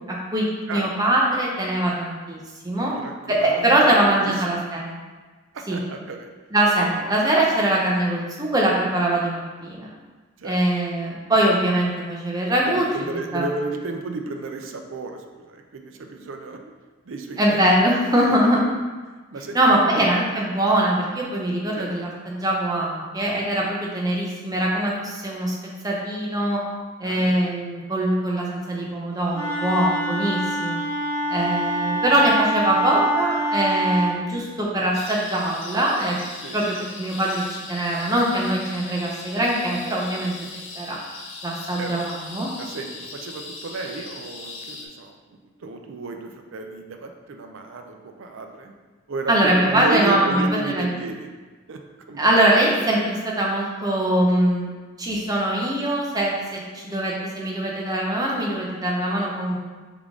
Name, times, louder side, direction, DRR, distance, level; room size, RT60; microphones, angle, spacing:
voice 1, 0.1-2.4 2.6-2.9 3.3-5.0 5.7-5.8 6.5-9.9 10.4-12.9 13.3-13.5 17.4-18.6 19.5-25.5 25.8-26.6 27.0-30.8 31.3-36.2 36.5-40.3 40.7-41.0 41.4-42.5 49.3-50.9 52.2-54.7 55.0-59.6, right 1 dB, 15° right, -3 dB, 0.6 m, -22 dB
voice 2, 2.8-4.3 5.5-6.3 7.0-7.1 10.4-10.6 12.7-16.6 17.1-17.6 18.1-18.2 19.3-20.1 21.7-21.9 27.0-27.4 36.4-36.7 41.8-42.0 42.6-45.2 45.6-48.7 49.1-51.3 51.7-51.8 52.1-52.3, right 3 dB, 65° right, 4 dB, 0.4 m, -33 dB
Wind instrument woodwind instrument, 29.3-34.2, right 1 dB, 10° left, 0.9 m, -25 dB
sound 1, 34.9-44.9, left 3 dB, 65° left, 0.6 m, -39 dB
3.6 x 3.5 x 3.6 m, 1.3 s
head